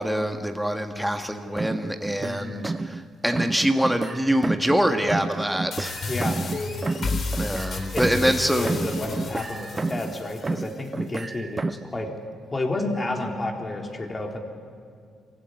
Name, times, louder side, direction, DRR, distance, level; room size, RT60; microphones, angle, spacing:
voice 1, 0.0-5.9 7.4-8.8 9.1-9.2, equal, 5° right, 5 dB, 1.7 m, -25 dB
sound 1, 1.5-3.0 3.3-4.8 5.1-8.4 8.6-10.2 10.4-11.9, right 3 dB, 30° right, 0.6 m, -30 dB
voice 2, 2.2-2.7 6.1-6.4 7.9-12.1 12.5-14.4, left 2 dB, 30° left, 1 dB, 3.9 m, -31 dB
sound 2, 5.7-10.7, left 3 dB, 55° left, 3.9 m, -32 dB
23.0 x 15.5 x 9.8 m, 2.2 s
supercardioid pair, 60°, 0 cm